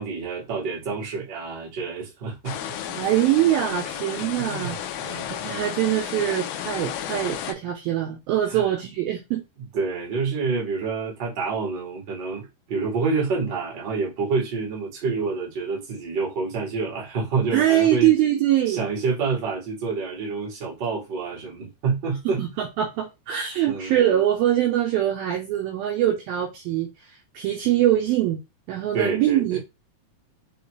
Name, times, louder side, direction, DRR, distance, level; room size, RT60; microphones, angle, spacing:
voice 1, 0.0-2.6 3.8-5.6 8.5-8.7 9.6-18.1 18.7-22.4 23.7-23.9 28.9-29.6, right 4 dB, 40° right, 1.5 m, -28 dB
sound 1, 2.5-7.5, left 10 dB, 85° left, 2.1 m, -33 dB
voice 2, 2.9-4.8 5.1-9.4 17.5-18.8 22.3-26.9 27.3-28.4 28.7-29.6, right 12 dB, 85° right, 2.1 m, -23 dB
6.9 x 2.4 x 3.2 m
omnidirectional pair, 4.9 m